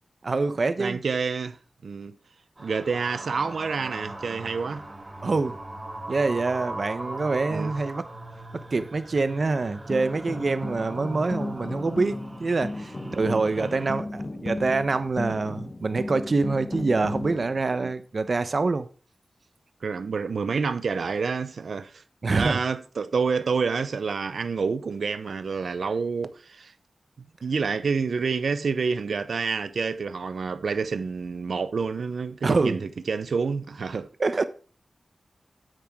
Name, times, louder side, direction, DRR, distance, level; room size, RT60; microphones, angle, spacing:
voice 1, 0.2-1.0 5.2-5.6 6.1-8.0 8.5-18.9 22.2-22.6 32.4-32.8 34.2-34.4, right 3 dB, 60° right, 0.9 m, -25 dB
voice 2, 0.8-1.6 1.8-2.2 2.6-4.8 7.5-7.7 13.1-13.4 17.8-17.9 19.8-22.0 22.4-26.7 27.4-34.1, right 5 dB, 85° right, 0.8 m, -28 dB
sound 1, 2.6-13.9, right 1 dB, 30° right, 3.8 m, -39 dB
sound 2, 9.7-17.6, left 2 dB, 40° left, 1.1 m, -35 dB
9.2 x 8.7 x 3.7 m
wide cardioid pair, 65°, 0 cm